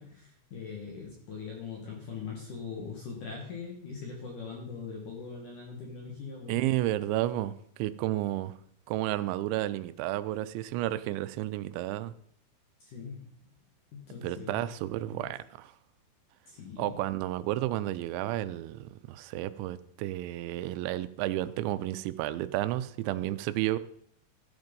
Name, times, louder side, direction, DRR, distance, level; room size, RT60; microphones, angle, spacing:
voice 1, 0.0-6.6 12.8-13.5 13.9-14.8 15.1-15.3 16.5-17.0, left 5 dB, 55° left, 2.8 m, -41 dB
voice 2, 6.5-7.5 7.8-8.5 8.9-12.1 14.2-15.7 16.8-23.8, right 15 dB, 85° right, 3.0 m, -31 dB
14.0 x 8.1 x 5.3 m
omnidirectional pair, 5.2 m